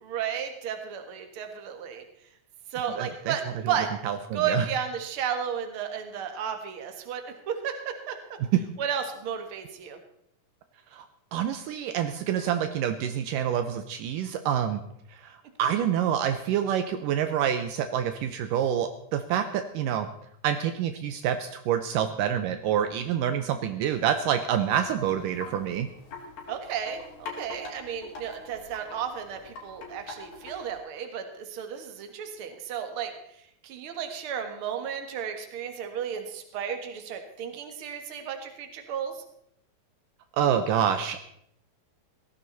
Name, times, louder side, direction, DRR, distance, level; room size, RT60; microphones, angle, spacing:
voice 1, 0.0-2.0 2.7-3.9 4.3-8.4 8.8-10.0 26.5-33.1 33.6-39.2, right 8 dB, 45° right, 6 dB, 2.1 m, -33 dB
voice 2, 3.0-3.3 4.0-4.7 10.9-11.0 11.3-14.8 15.2-20.1 20.4-25.9 40.4-41.2, right 9 dB, 80° right, 8 dB, 2.3 m, -27 dB
Wind chime, 24.6-30.8, left 3 dB, 70° left, 4.5 m, -44 dB
17.0 x 14.0 x 4.1 m, 0.73 s
omnidirectional pair, 4.1 m